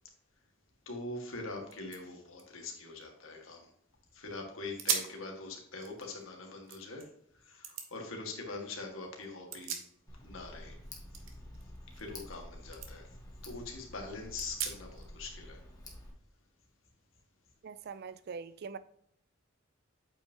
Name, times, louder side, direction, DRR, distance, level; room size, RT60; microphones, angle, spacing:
voice 1, 0.9-3.7 4.1-9.8 10.2-10.8 11.1-11.2 11.9-13.1 13.4-15.6, left 3 dB, 80° left, 1.9 m, -43 dB
sound 1, 1.3-1.4 1.6-3.9 4.3-4.4 4.8-5.2 5.6-7.1 7.6-7.9 9.2-10.4 10.6-12.4 12.7-12.9 13.4-13.5 14.4-15.1, right 7 dB, 70° right, 1.2 m, -40 dB
Tick, 10.1-16.1, left 1 dB, 20° left, 1.5 m, -49 dB
voice 2, 17.6-18.8, right 5 dB, 55° right, 0.4 m, -43 dB
8.4 x 5.4 x 2.9 m
head